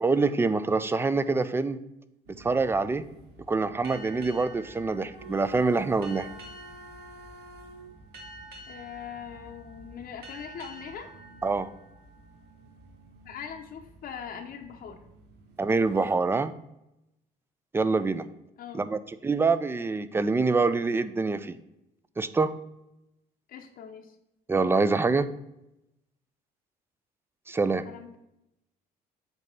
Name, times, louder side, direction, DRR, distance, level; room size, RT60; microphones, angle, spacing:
voice 1, 0.0-1.8 2.4-3.0 3.5-6.3 11.4-11.7 15.6-16.5 17.7-18.3 18.7-21.6 22.2-22.5 24.5-25.3 27.5-27.8, right 4 dB, 15° right, 13 dB, 0.4 m, -25 dB
sound 1, 2.3-16.2, right 1 dB, 85° right, 1.1 m, -51 dB
sound 2, 3.8-13.0, right 1 dB, 65° right, 1.6 m, -49 dB
voice 2, 8.7-11.1 13.2-15.0 18.6-18.8 23.5-24.2 27.8-28.1, left 7 dB, 60° left, 3 dB, 0.7 m, -41 dB
8.0 x 2.9 x 5.3 m, 0.87 s
cardioid pair, 110°, 17 cm